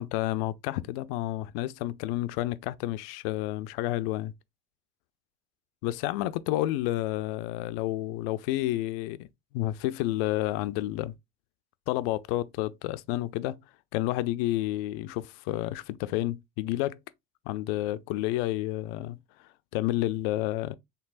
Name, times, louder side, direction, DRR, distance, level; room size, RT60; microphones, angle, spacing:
voice 1, 0.0-4.3 5.8-9.3 9.5-11.1 11.9-13.6 13.9-17.0 17.5-19.2 19.7-20.7, left 15 dB, 75° left, 0.5 m, -30 dB
4.5 x 3.3 x 2.4 m
supercardioid pair, 95°, 30 cm